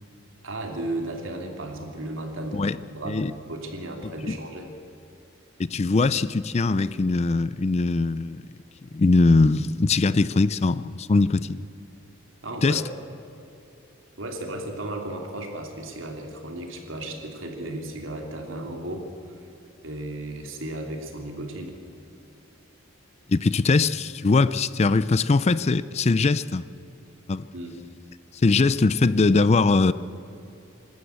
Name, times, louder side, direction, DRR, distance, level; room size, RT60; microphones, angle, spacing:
voice 1, 0.4-4.7 12.4-12.8 14.2-19.4 19.8-21.7 27.5-27.8, right 1 dB, 70° right, 2 dB, 3.0 m, -35 dB
voice 2, 5.6-8.4 8.9-11.6 12.6-12.8 23.3-26.6 27.3-27.5 28.3-29.9, left 3 dB, 30° left, 16 dB, 0.4 m, -21 dB
25.5 x 13.0 x 8.1 m, 2.9 s
head